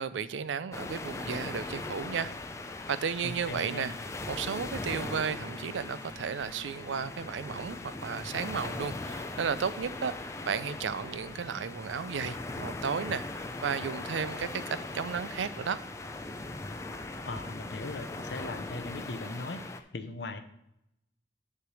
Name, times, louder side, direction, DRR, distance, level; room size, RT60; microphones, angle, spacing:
voice 1, 0.0-2.3 2.9-3.9 4.3-15.8, right 6 dB, 80° right, 15 dB, 0.4 m, -34 dB
sound 1, 0.7-19.8, left 2 dB, 15° left, 0.4 m, -39 dB
voice 2, 3.2-3.9 17.2-19.6 19.9-20.4, left 2 dB, 60° left, 9 dB, 0.7 m, -39 dB
Bass guitar, 4.9-11.1, left 2 dB, 35° right, 1.4 m, -53 dB
9.8 x 3.3 x 6.1 m, 0.81 s
head